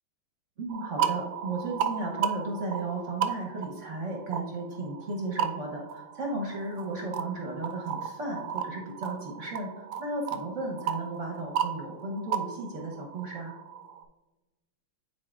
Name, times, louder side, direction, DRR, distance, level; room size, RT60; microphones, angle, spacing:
voice 1, 0.6-13.5, right 2 dB, 45° right, -1 dB, 1.0 m, -35 dB
sound 1, 0.7-14.0, right 9 dB, 75° right, 1.2 m, -35 dB
10.0 x 4.4 x 2.4 m, 1.1 s
omnidirectional pair, 2.4 m